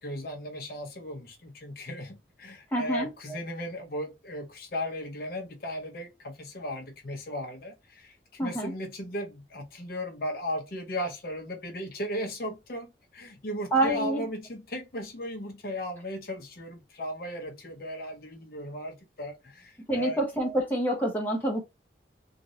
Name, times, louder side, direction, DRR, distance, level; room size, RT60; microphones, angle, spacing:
voice 1, 0.0-20.2, equal, 50° left, 0.7 m, -36 dB
voice 2, 2.7-3.1 8.4-8.7 13.7-14.3 19.9-21.6, right 1 dB, 10° left, 1.0 m, -27 dB
3.1 x 2.5 x 2.6 m
head